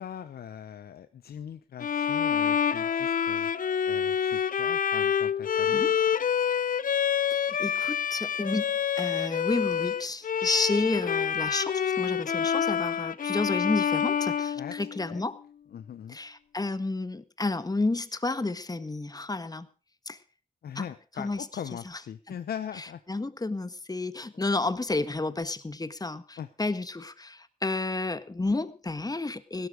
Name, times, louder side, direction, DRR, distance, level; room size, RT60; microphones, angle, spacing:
voice 1, 0.0-5.9 14.6-14.8 15.1-15.3 15.7-16.2 20.6-23.0 26.4-26.5, left 9 dB, 85° left, 11 dB, 0.9 m, -41 dB
Bowed string instrument, 1.8-15.3, left 8 dB, 60° left, 0.7 m, -27 dB
voice 2, 7.4-8.7 9.0-15.4 16.1-19.7 20.1-20.2 20.7-20.9 21.2-21.4 23.1-29.7, left 2 dB, 25° left, 13 dB, 1.6 m, -31 dB
17.0 x 13.0 x 5.0 m, 0.36 s
cardioid pair, 60°, 16 cm